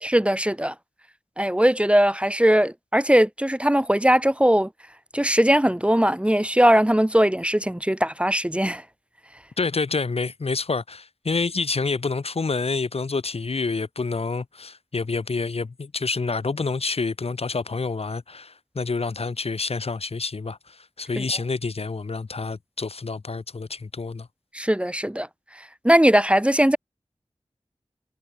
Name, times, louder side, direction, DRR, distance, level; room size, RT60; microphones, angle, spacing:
voice 1, 0.0-0.7 1.4-4.7 5.1-8.8 21.2-21.3 24.5-25.3 25.8-26.8, equal, 10° right, 0.9 m, -20 dB
voice 2, 9.6-24.3, left 4 dB, 70° left, 1.1 m, -28 dB
wide cardioid pair, 45°, 11 cm